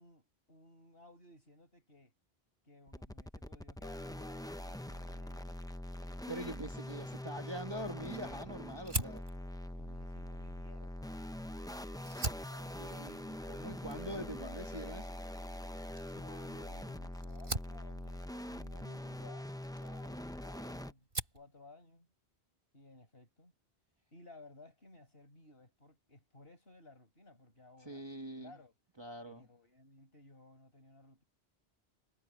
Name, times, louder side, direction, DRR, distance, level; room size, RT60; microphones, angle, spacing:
voice 1, 0.0-2.1 2.6-5.5 8.9-12.9 16.1-21.1 21.3-22.1 22.7-23.5 24.1-28.0 28.4-28.7 29.2-31.2, left 2 dB, 65° left, 6.2 m, -58 dB
sound 1, 2.9-20.9, left 1 dB, 5° left, 0.5 m, -43 dB
voice 2, 6.3-9.2 12.8-15.1 27.8-28.6 29.0-29.5, right 1 dB, 25° right, 1.4 m, -44 dB
Fire, 8.8-11.5 11.9-20.6 20.9-21.5, right 2 dB, 55° right, 3.6 m, -43 dB
omnidirectional pair, 1.1 m